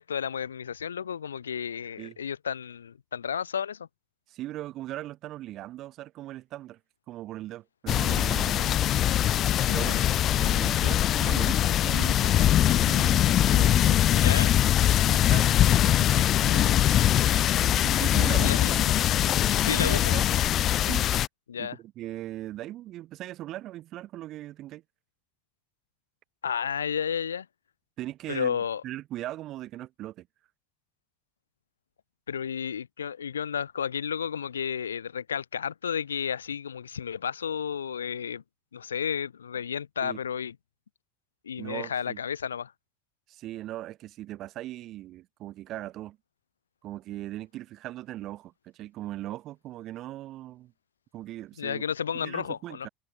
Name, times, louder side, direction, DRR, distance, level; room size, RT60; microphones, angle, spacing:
voice 1, 0.0-3.9 14.1-14.5 18.4-18.7 19.6-20.1 21.5-21.8 26.4-27.5 28.3-28.8 32.3-38.4 38.7-40.5 41.4-42.7 51.6-52.9, left 7 dB, 80° left, 0.8 m, -32 dB
voice 2, 4.3-6.8 7.1-8.7 9.5-14.5 15.0-17.3 17.6-18.9 19.7-20.3 20.8-21.1 21.6-24.8 28.0-30.3 40.0-40.2 41.6-42.2 43.3-46.2 46.8-50.7 51.1-51.8 52.1-52.9, right 14 dB, 45° right, 4.9 m, -39 dB
sound 1, 7.9-21.3, left 12 dB, 40° left, 0.3 m, -22 dB
figure-of-eight pair, 75°, 0 cm